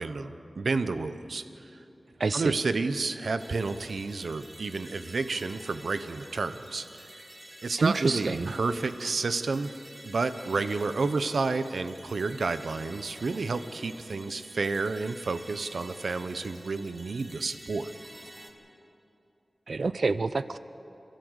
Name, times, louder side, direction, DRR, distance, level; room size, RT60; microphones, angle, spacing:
voice 1, 0.0-1.4 2.3-7.1 7.6-9.7 10.0-17.9, right 3 dB, 90° right, 11 dB, 0.8 m, -30 dB
voice 2, 2.2-2.5 7.8-8.5 19.7-20.6, right 4 dB, 70° right, 14 dB, 0.4 m, -27 dB
sound 1, 3.4-18.5, right 1 dB, 25° right, 2.3 m, -49 dB
27.5 x 13.0 x 8.1 m, 2.9 s
wide cardioid pair, 85°, 0 cm